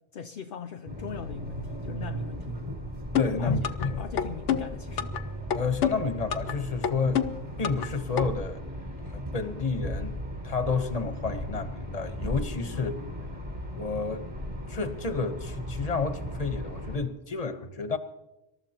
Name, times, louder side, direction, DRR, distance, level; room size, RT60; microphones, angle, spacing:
voice 1, 0.1-2.6 3.4-3.5 4.0-5.1 7.0-7.2 12.7-13.1, left 7 dB, 55° left, 0.7 m, -40 dB
sound 1, 0.9-17.0, equal, 30° right, 4.2 m, -37 dB
sound 2, 3.1-3.9 4.2-5.2 5.5-6.5 6.8-7.9 8.2-8.3, left 9 dB, 90° left, 1.0 m, -27 dB
voice 2, 3.1-4.0 5.5-7.2 7.6-8.6 9.1-10.2 10.4-12.9 13.7-14.3 14.7-18.0, left 4 dB, 35° left, 1.1 m, -30 dB
26.0 x 13.0 x 2.9 m
omnidirectional pair, 1.2 m